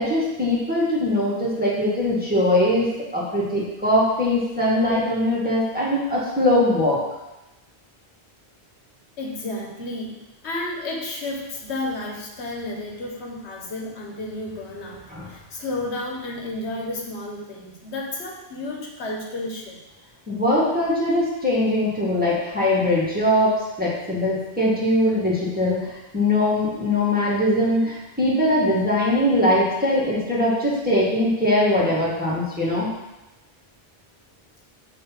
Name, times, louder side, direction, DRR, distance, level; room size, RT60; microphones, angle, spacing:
voice 1, 0.0-2.9 3.1-7.0 15.1-15.3 20.3-32.9, left 1 dB, 10° right, -8 dB, 1.5 m, -21 dB
voice 2, 9.2-19.8, left 2 dB, 80° left, 0 dB, 1.2 m, -32 dB
6.7 x 2.8 x 5.7 m, 0.99 s
omnidirectional pair, 1.1 m